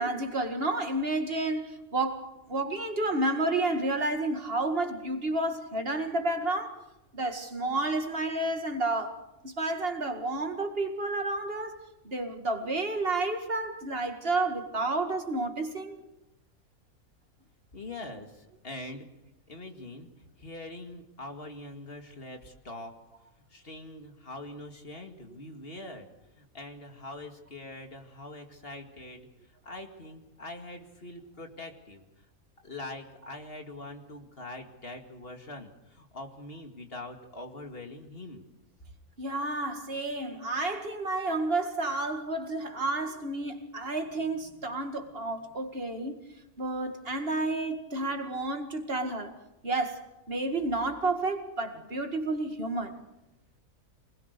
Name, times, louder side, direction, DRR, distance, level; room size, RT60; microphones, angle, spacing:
voice 1, 0.0-6.8 7.1-11.8 12.0-16.0 39.2-46.2 46.6-49.3 49.6-53.0, right 2 dB, 40° right, 2.2 m, -31 dB
voice 2, 17.7-19.1 19.5-20.1 20.4-22.9 23.5-26.1 26.4-29.3 29.6-32.0 32.6-38.4 44.4-44.6 45.0-45.1, left 2 dB, 40° left, 2.4 m, -43 dB
25.0 x 20.5 x 6.8 m
omnidirectional pair, 1.5 m